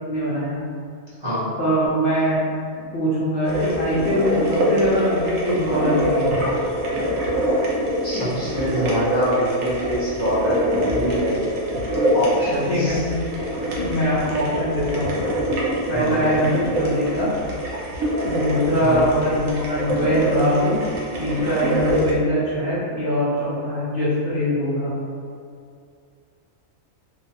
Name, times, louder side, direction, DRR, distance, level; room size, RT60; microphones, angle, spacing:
voice 1, 0.1-0.6 1.6-2.4 2.9-6.5 8.1-8.4 12.7-13.2 13.8-15.2 15.9-17.3 18.2-20.8 21.2-24.9, equal, 55° left, -11 dB, 0.7 m, -22 dB
sound 1, 3.4-22.1, equal, 80° right, 1.0 m, -24 dB
voice 2, 8.0-11.4 12.1-13.0 15.9-16.2 18.8-19.0, equal, 25° right, -13 dB, 0.9 m, -25 dB
2.9 x 2.2 x 2.8 m, 2.3 s
omnidirectional pair, 1.4 m